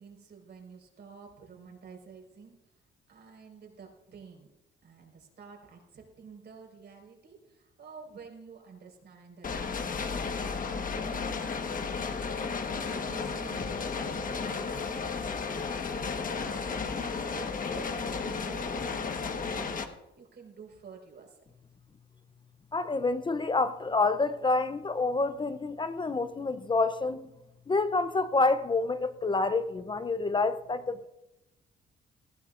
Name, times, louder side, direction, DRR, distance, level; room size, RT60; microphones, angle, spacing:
voice 1, 0.0-2.8 3.1-4.5 4.8-12.2 12.6-21.4, right 5 dB, 60° right, 4.8 m, -50 dB
sound 1, 9.4-19.8, left 5 dB, 45° left, 1.3 m, -33 dB
voice 2, 22.7-27.3 27.7-31.0, left 3 dB, 25° left, 0.6 m, -28 dB
19.0 x 15.0 x 2.5 m
cardioid pair, 90°, 20 cm